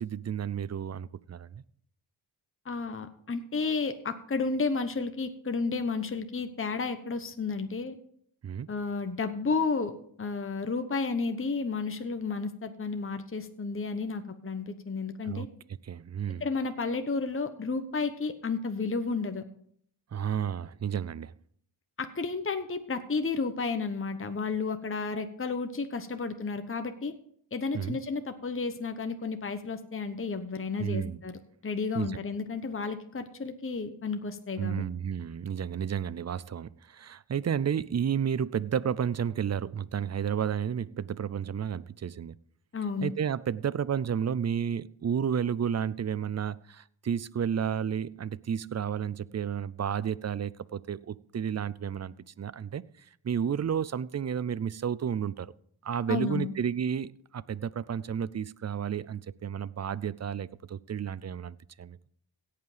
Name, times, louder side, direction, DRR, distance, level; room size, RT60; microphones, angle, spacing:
voice 1, 0.0-1.6 8.4-8.7 15.2-15.5 15.8-16.4 20.1-21.3 27.7-28.0 30.8-31.2 31.9-32.2 34.6-42.4 43.0-55.5 55.8-62.0, right 8 dB, 35° right, 0.5 m, -32 dB
voice 2, 2.6-8.0 8.7-9.9 10.2-15.5 16.4-19.4 22.0-27.1 27.5-34.9 42.7-43.1 56.1-56.5, left 4 dB, 25° left, 1.0 m, -32 dB
17.0 x 5.8 x 5.0 m
cardioid pair, 60°, 47 cm